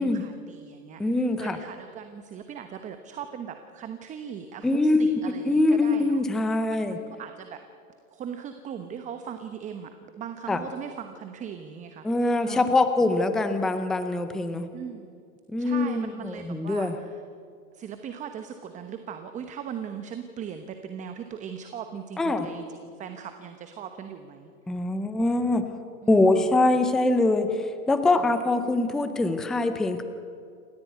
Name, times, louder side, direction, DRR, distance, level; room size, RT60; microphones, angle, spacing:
voice 1, 0.0-7.6 8.1-12.8 14.7-15.2 15.6-17.2 17.7-24.5 26.0-26.6 28.1-28.3, right 8 dB, 15° right, 8 dB, 1.1 m, -39 dB
voice 2, 1.0-1.6 4.6-7.0 10.5-10.6 12.0-14.7 15.5-16.9 22.2-22.5 24.7-25.7 26.1-30.0, left 2 dB, ahead, 9 dB, 0.5 m, -23 dB
28.0 x 14.5 x 9.3 m, 2.3 s
hypercardioid pair, 145°, 45 cm